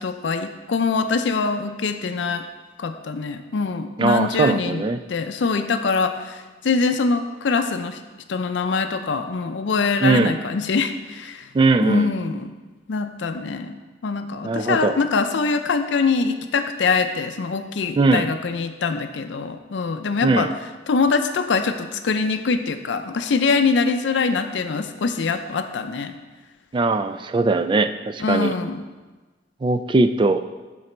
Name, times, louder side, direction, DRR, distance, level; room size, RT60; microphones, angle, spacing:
voice 1, 0.0-2.4 2.8-4.8 5.1-6.4 6.6-8.0 8.3-11.4 11.8-12.5 12.9-13.7 14.0-20.5 20.9-26.1 28.2-28.8, left 4 dB, 85° left, 7 dB, 0.5 m, -23 dB
voice 2, 4.0-5.0 10.0-10.4 11.5-12.1 14.4-14.9 18.0-18.3 20.2-20.6 26.7-28.5 29.6-30.4, right 3 dB, 25° right, 11 dB, 0.3 m, -20 dB
11.0 x 4.0 x 4.4 m, 1.3 s
head